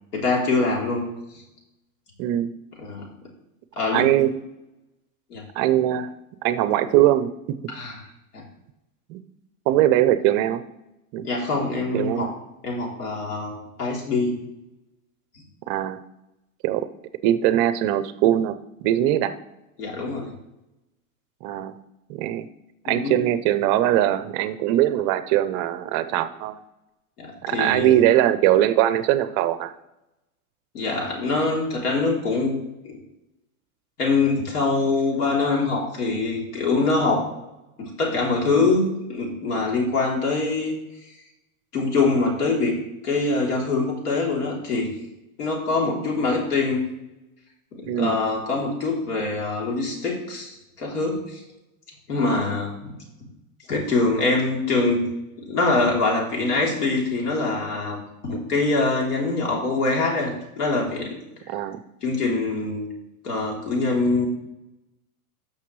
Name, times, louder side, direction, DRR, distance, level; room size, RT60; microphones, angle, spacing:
voice 1, 0.1-1.0 2.8-3.0 3.8-4.1 5.3-5.4 7.7-8.0 8.3-8.5 11.2-12.3 12.6-14.4 19.8-20.3 22.9-23.1 27.2-28.0 30.7-32.6 32.8-33.0 34.0-37.3 37.8-40.7 41.7-42.7 43.0-44.9 45.4-46.8 47.8-51.4 52.1-52.9 53.7-55.0 55.5-61.1 61.5-61.6 62.0-62.9 63.2-64.3, left 3 dB, 90° left, -2 dB, 3.4 m, -24 dB
voice 2, 2.2-2.5 3.9-4.3 5.6-6.1 6.4-7.3 9.1-9.2 9.7-10.6 11.1-11.3 11.9-12.3 15.7-16.0 16.6-16.9 17.2-19.3 21.4-21.7 22.1-22.5 22.8-26.6 27.4-29.7 47.9-48.2 61.5-61.8, right 12 dB, 40° right, 12 dB, 0.6 m, -21 dB
13.0 x 6.1 x 3.2 m, 0.92 s
supercardioid pair, 130°, 45 cm